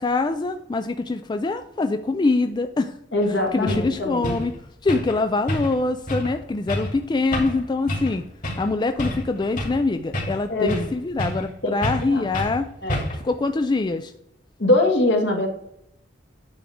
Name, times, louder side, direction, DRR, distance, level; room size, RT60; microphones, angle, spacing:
voice 1, 0.0-2.9 3.3-4.5 4.8-8.2 8.6-12.7 13.1-14.1, left 3 dB, 25° left, 8 dB, 0.3 m, -24 dB
voice 2, 3.1-4.3 10.5-10.8 11.6-11.7 12.1-12.2 12.8-13.0 14.6-15.5, left 2 dB, 65° left, 2 dB, 1.8 m, -22 dB
sound 1, 3.2-3.3 3.7-3.9 4.2-4.5 4.9-5.2 5.5-5.8 6.1-6.3 6.7-6.9 7.3-7.6 7.9-8.1 8.4-8.7 9.0-9.8 10.1-10.9 11.2-11.5 11.8-12.1 12.3-12.6 12.9-13.3, left 1 dB, 45° left, 2.6 m, -28 dB
9.5 x 3.5 x 6.3 m, 0.76 s
head